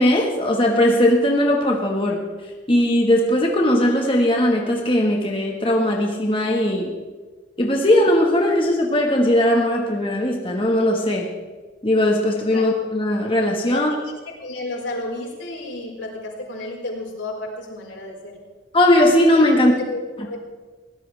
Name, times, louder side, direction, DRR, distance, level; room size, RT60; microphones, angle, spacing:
voice 1, 0.0-2.2 2.7-6.9 7.6-11.3 11.8-13.9 18.7-19.7, left 1 dB, 30° left, 0 dB, 1.7 m, -18 dB
voice 2, 13.7-18.4 19.6-20.4, left 2 dB, 90° left, -1 dB, 4.8 m, -32 dB
22.0 x 17.5 x 3.5 m, 1.3 s
head